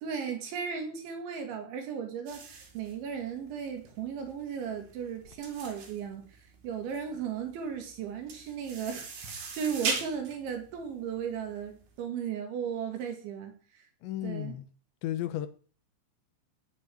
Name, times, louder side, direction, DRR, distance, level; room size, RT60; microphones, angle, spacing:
voice 1, 0.0-6.4 6.6-13.8 14.2-14.6, right 7 dB, 70° right, 4 dB, 4.5 m, -36 dB
sound 1, 2.3-11.9, right 5 dB, 50° right, 4.0 m, -39 dB
voice 2, 14.0-14.6 15.0-15.5, left 13 dB, 75° left, 11 dB, 3.0 m, -33 dB
15.5 x 5.5 x 8.7 m, 0.41 s
omnidirectional pair, 5.8 m